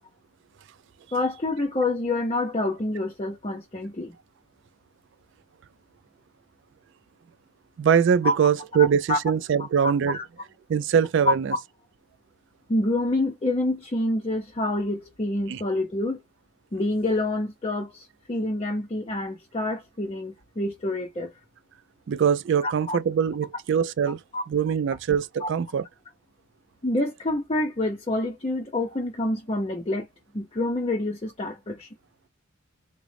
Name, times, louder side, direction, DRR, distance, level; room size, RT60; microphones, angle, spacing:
voice 1, 1.1-4.1 8.2-8.4 8.8-9.2 9.8-10.2 11.3-11.6 12.7-16.2 16.7-21.3 22.6-23.0 24.3-24.4 25.4-25.5 26.8-30.1 30.3-31.9, left 2 dB, 25° left, 0.5 m, -27 dB
voice 2, 7.8-10.2 10.7-11.5 15.5-15.6 22.1-24.2 24.5-25.8, right 7 dB, 55° right, 0.3 m, -23 dB
3.7 x 2.0 x 3.3 m
head